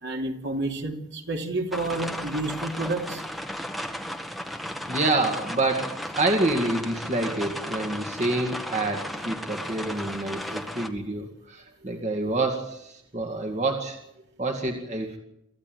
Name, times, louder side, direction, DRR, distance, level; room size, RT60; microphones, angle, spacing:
voice 1, 0.0-3.2 11.8-12.3 13.4-13.5, right 2 dB, 50° right, 2 dB, 3.0 m, -30 dB
sound 1, 1.7-10.9, equal, ahead, 1.4 m, -35 dB
voice 2, 4.9-14.0 14.4-15.2, right 2 dB, 30° right, 3 dB, 2.1 m, -27 dB
25.0 x 15.0 x 9.1 m, 0.83 s
head